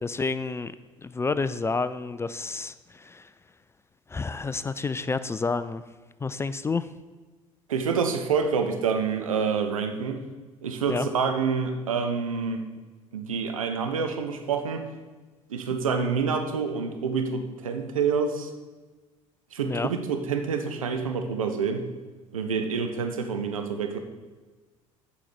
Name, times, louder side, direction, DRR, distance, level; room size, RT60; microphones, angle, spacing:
voice 1, 0.0-0.8 1.0-3.3 4.1-5.8 6.2-6.9 10.9-11.1 19.6-19.9, left 4 dB, 15° left, 14 dB, 0.3 m, -29 dB
voice 2, 7.7-10.2 10.6-12.7 13.1-14.8 15.5-18.5 19.5-21.9 22.3-24.0, right 5 dB, 80° right, 6 dB, 0.8 m, -27 dB
8.3 x 5.1 x 6.1 m, 1.3 s
figure-of-eight pair, 60°, 17 cm